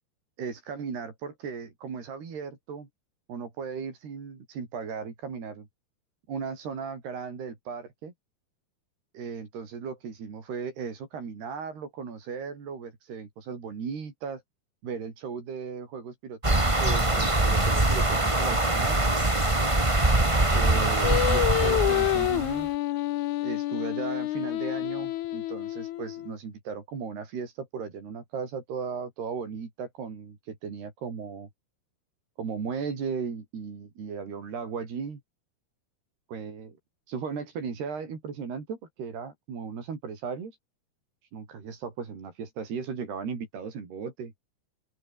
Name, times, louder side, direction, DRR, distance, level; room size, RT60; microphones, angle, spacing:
voice 1, 0.4-2.9 3.3-5.7 6.3-8.1 9.1-14.4 14.8-19.0 20.5-22.7 23.4-31.5 32.4-35.2 36.3-36.8 37.1-40.5 41.3-44.3, right 6 dB, 80° right, 7.1 m, -36 dB
sound 1, 16.4-22.6, right 2 dB, 10° right, 1.7 m, -23 dB
Singing, 21.0-26.3, left 15 dB, 80° left, 1.7 m, -28 dB
open air
omnidirectional pair, 4.5 m